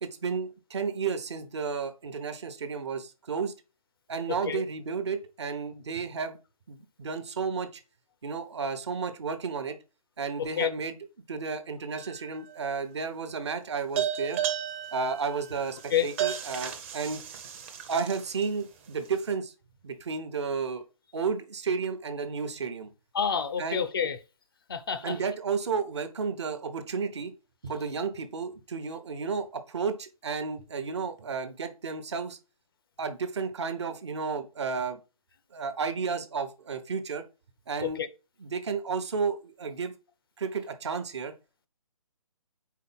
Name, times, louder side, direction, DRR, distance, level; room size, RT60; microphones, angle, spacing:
voice 1, 0.0-3.5 4.1-6.4 6.7-7.8 8.2-9.8 10.2-11.0 11.3-14.4 14.9-17.2 17.9-19.5 19.8-20.8 21.1-22.9 23.6-23.8 25.0-27.3 27.6-32.4 33.0-35.0 35.5-37.3 37.7-38.0 38.4-39.9 40.4-41.3, right 5 dB, 50° right, 0.8 m, -32 dB
voice 2, 10.4-10.7 15.9-16.1 23.1-24.2 24.7-25.2 37.8-38.1, left 8 dB, 40° left, 0.5 m, -28 dB
sound 1, 12.0-12.6 14.0-18.4, right 10 dB, 20° right, 0.6 m, -33 dB
4.7 x 3.9 x 5.3 m
figure-of-eight pair, 140°, 18 cm